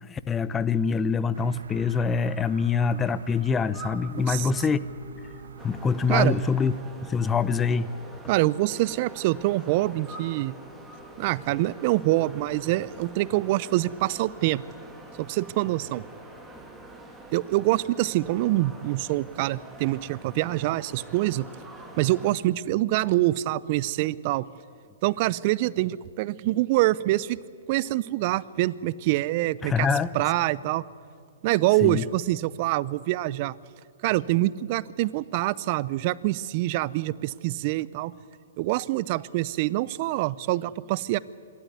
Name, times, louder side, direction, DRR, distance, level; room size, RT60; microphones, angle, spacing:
voice 1, 0.0-4.8 5.6-6.7 7.1-7.9 29.6-30.1 31.8-32.0, left 5 dB, 15° left, 16 dB, 0.7 m, -25 dB
sound 1, 1.3-6.8, right 4 dB, 80° right, 1.5 m, -44 dB
sound 2, 3.7-12.9, right 3 dB, 25° right, 5.7 m, -49 dB
sound 3, 5.6-22.3, right 2 dB, 10° right, 2.8 m, -46 dB
voice 2, 8.3-10.5 11.2-14.6 15.2-16.0 17.3-21.5 22.0-24.5 25.0-27.4 27.7-29.9 30.1-30.8 31.4-33.6 34.0-38.1 38.6-41.2, right 17 dB, 45° right, 21 dB, 0.6 m, -25 dB
25.5 x 13.0 x 9.6 m, 2.2 s
hypercardioid pair, 130°, 0 cm